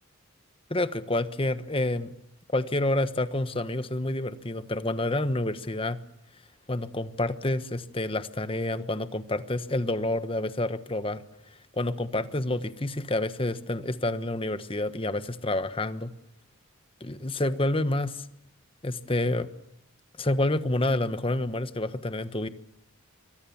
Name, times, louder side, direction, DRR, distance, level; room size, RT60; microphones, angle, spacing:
voice 1, 0.7-2.1 2.5-6.0 6.7-11.2 11.8-16.1 17.0-18.2 18.8-19.5 20.2-22.5, left 1 dB, 25° left, 12 dB, 1.2 m, -28 dB
26.5 x 24.0 x 7.2 m, 0.81 s
head